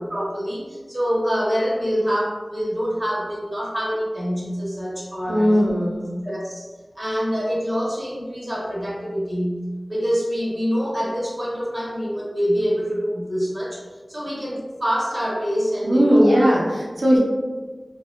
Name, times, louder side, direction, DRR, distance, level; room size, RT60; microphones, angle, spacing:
voice 1, 0.1-5.6 6.2-6.7 7.0-13.8 14.1-16.5, equal, 20° right, -5 dB, 0.7 m, -25 dB
voice 2, 5.3-6.2 15.8-17.2, equal, 65° right, -5 dB, 0.5 m, -18 dB
2.6 x 2.1 x 2.2 m, 1.3 s
wide cardioid pair, 65°, 0 cm